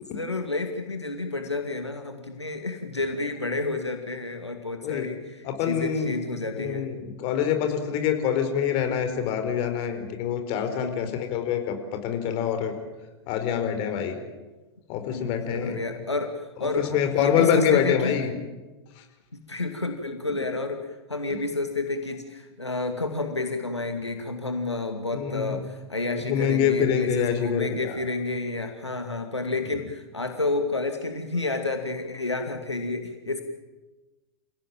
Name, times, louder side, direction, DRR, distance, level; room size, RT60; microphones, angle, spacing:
voice 1, 0.1-6.9 10.7-11.2 15.1-18.2 19.3-33.4, left 3 dB, 90° left, 5 dB, 2.4 m, -30 dB
voice 2, 5.4-6.2 6.5-12.7 13.3-14.1 14.9-15.8 16.8-18.3 25.1-25.5 26.3-28.0, left 8 dB, 40° left, 7 dB, 4.7 m, -25 dB
29.0 x 17.0 x 9.1 m, 1.2 s
figure-of-eight pair, 100°, 14 cm